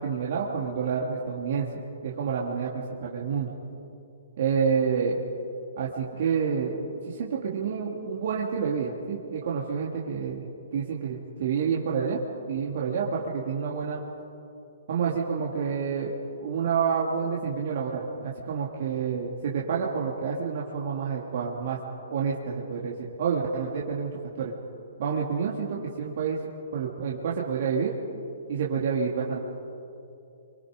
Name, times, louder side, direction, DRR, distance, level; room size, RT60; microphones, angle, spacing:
voice 1, 0.0-1.7 2.0-3.6 4.4-5.2 5.8-6.8 7.1-10.5 10.7-12.2 12.5-14.0 14.9-16.1 16.4-21.8 22.1-24.5 25.0-26.4 26.7-27.9 28.5-29.4, right 6 dB, 60° right, -3 dB, 2.9 m, -28 dB
29.0 x 25.5 x 5.3 m, 2.6 s
hypercardioid pair, 145°, 0 cm